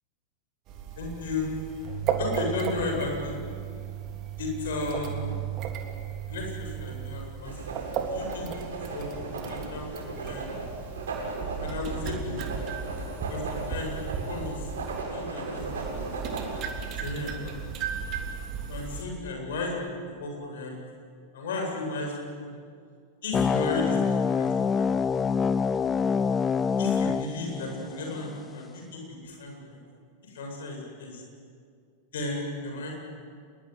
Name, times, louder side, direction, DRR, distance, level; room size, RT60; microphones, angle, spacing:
sound 1, 0.7-15.0 15.6-19.0, right 7 dB, 35° right, 3.2 m, -35 dB
voice 1, 1.0-1.5 2.2-3.4 4.4-5.2 6.3-7.8 8.1-8.5 8.7-9.1 9.5-10.5 11.6-12.4 13.3-13.9 14.3-14.7 15.1-16.3 16.9-17.8 18.7-19.7 20.2-20.8 21.3-22.2 22.4-22.5 23.2-24.9 26.8-29.8 30.2-31.2 32.1-32.9, left 3 dB, 60° left, 1 dB, 7.9 m, -34 dB
Writing, 7.4-16.9, right 3 dB, 60° right, 7.9 m, -36 dB
sound 2, 23.3-28.3, left 6 dB, 20° left, 0.7 m, -26 dB
27.0 x 21.5 x 9.6 m, 2.2 s
figure-of-eight pair, 90°, 0 cm